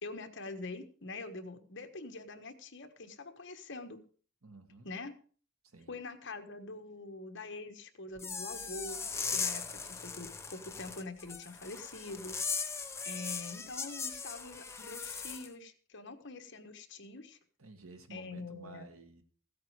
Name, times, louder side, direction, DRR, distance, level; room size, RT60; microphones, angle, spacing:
voice 1, 0.0-4.0 4.8-5.1 5.9-12.4 13.0-17.4 18.1-18.9, left 3 dB, 55° left, 7 dB, 1.3 m, -45 dB
voice 2, 4.4-4.9 5.6-5.9 12.9-13.2 17.6-19.2, right 3 dB, 80° right, 7 dB, 1.7 m, -53 dB
sound 1, 8.2-15.5, left 5 dB, 10° left, 0.9 m, -39 dB
15.5 x 8.6 x 4.9 m, 0.43 s
head